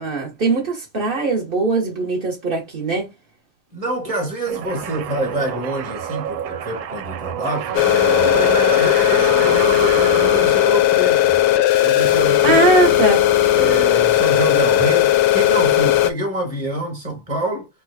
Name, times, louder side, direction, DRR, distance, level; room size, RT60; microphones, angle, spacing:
voice 1, 0.0-3.1 12.4-13.2, right 3 dB, 45° right, 0.7 m, -20 dB
voice 2, 3.7-11.4 11.8-12.6 13.6-17.7, right 1 dB, 20° right, 1.0 m, -26 dB
sound 1, 4.5-11.2, right 9 dB, 75° right, 1.3 m, -28 dB
sound 2, 7.8-16.1, left 12 dB, 85° left, 1.5 m, -16 dB
4.3 x 2.2 x 3.3 m
omnidirectional pair, 2.4 m